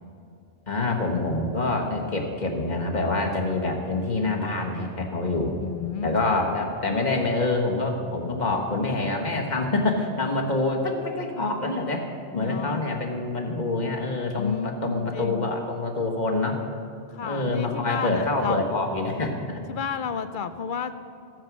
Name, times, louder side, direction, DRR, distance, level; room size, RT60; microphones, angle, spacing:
voice 1, 0.7-5.5 6.0-12.1 12.3-16.6 17.2-19.6, left 2 dB, 45° left, 1 dB, 1.4 m, -26 dB
voice 2, 5.6-6.5 12.3-12.8 14.3-15.5 17.1-18.6 19.7-20.9, left 6 dB, 60° left, 11 dB, 0.7 m, -31 dB
14.0 x 9.0 x 6.0 m, 2.6 s
omnidirectional pair, 1.1 m